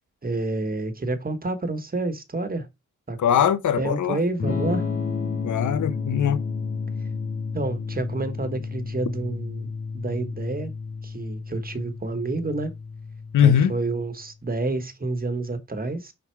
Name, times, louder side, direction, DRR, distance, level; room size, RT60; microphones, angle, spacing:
voice 1, 0.2-2.7 3.1-3.4 3.8-4.9 7.5-9.7 9.9-10.7 11.0-12.7 13.4-16.1, right 2 dB, 30° right, 1.3 m, -29 dB
voice 2, 3.2-4.2 5.4-6.4 13.3-13.8, left 9 dB, 80° left, 0.6 m, -21 dB
Electric guitar / Strum, 4.4-14.2, left 4 dB, 50° left, 1.8 m, -31 dB
5.7 x 3.9 x 4.6 m
cardioid pair, 85°, 30 cm